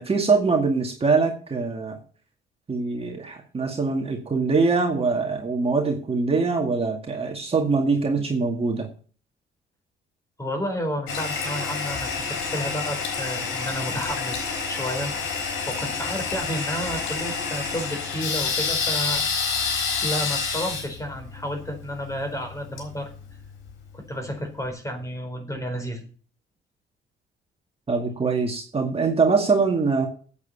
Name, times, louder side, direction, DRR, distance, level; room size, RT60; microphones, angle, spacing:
voice 1, 0.0-2.0 2.7-8.9 27.9-30.1, right 4 dB, 30° right, 1 dB, 2.2 m, -23 dB
voice 2, 10.4-15.1 15.5-19.6 20.0-23.1 23.9-26.0, equal, 15° left, 5 dB, 4.5 m, -31 dB
Toilet flush, 11.1-23.7, left 5 dB, 85° left, 4.0 m, -29 dB
8.6 x 8.4 x 7.2 m, 0.40 s
cardioid pair, 90°, 20 cm